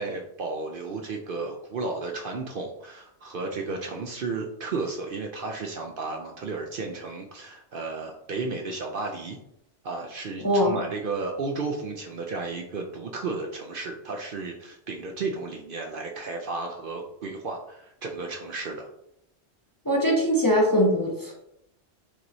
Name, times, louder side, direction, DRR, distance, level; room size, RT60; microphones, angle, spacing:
voice 1, 0.0-9.4 9.8-18.9, right 3 dB, 60° right, 2 dB, 0.7 m, -33 dB
voice 2, 10.4-10.8 19.9-21.3, equal, 20° left, -2 dB, 0.7 m, -21 dB
5.9 x 3.0 x 2.7 m, 0.77 s
omnidirectional pair, 1.2 m